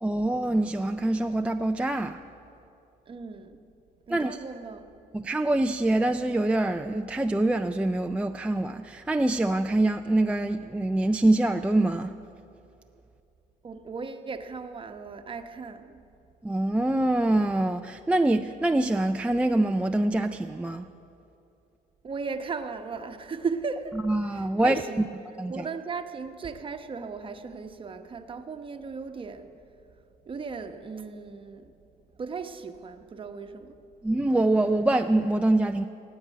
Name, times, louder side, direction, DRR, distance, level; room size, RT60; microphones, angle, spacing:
voice 1, 0.0-2.2 4.1-4.4 5.1-12.1 16.4-20.9 24.0-24.8 25.4-25.7 34.0-35.9, right 2 dB, 5° right, 5 dB, 0.4 m, -25 dB
voice 2, 3.1-3.6 4.1-4.9 13.6-16.0 22.0-24.0 24.3-25.1 25.5-29.5 30.3-31.7 32.2-33.8, right 5 dB, 30° right, 7 dB, 1.0 m, -36 dB
15.5 x 8.8 x 9.2 m, 2.7 s
cardioid pair, 110°, 17 cm